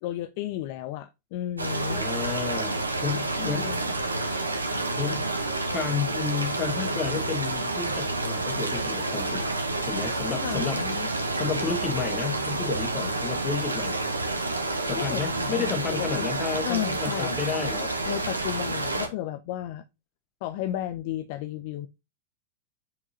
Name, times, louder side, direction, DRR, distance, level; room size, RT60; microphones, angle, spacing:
voice 1, 0.0-2.1 3.4-3.8 10.3-11.1 15.0-16.3 16.6-17.3 18.0-19.8 20.4-21.9, left 13 dB, 50° left, 0.5 m, -33 dB
sound 1, 1.6-19.1, right 2 dB, 80° right, 1.0 m, -29 dB
voice 2, 1.9-3.8 5.0-5.3 5.7-9.5 9.8-14.0 14.9-17.9, left 6 dB, 25° left, 1.6 m, -32 dB
8.3 x 4.7 x 2.8 m
figure-of-eight pair, 90°, 0 cm